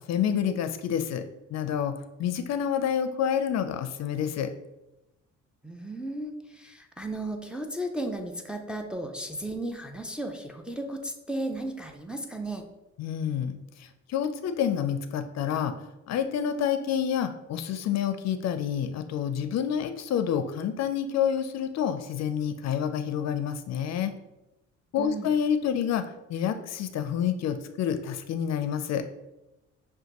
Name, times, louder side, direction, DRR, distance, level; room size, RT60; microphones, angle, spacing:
voice 1, 0.1-1.2 1.5-4.5 13.0-13.5 13.8-15.7 16.1-24.1 24.9-26.0 26.3-29.0, left 8 dB, 60° left, 9 dB, 0.4 m, -28 dB
voice 2, 5.6-12.6 25.0-25.3, right 1 dB, 5° right, 3 dB, 0.4 m, -35 dB
6.2 x 2.2 x 2.9 m, 0.98 s
cardioid pair, 90°, 30 cm